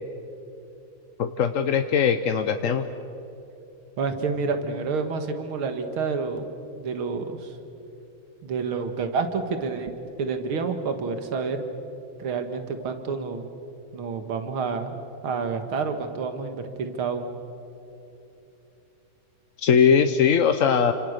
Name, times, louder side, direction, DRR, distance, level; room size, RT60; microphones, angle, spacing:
voice 1, 1.2-2.9 19.6-20.9, left 7 dB, 55° left, 8 dB, 1.0 m, -20 dB
voice 2, 4.0-6.5 6.8-7.5 8.4-9.9 10.2-11.6 12.2-13.4 13.9-15.0 15.2-17.3, right 5 dB, 85° right, 7 dB, 2.5 m, -28 dB
30.0 x 26.0 x 6.7 m, 3.0 s
omnidirectional pair, 2.2 m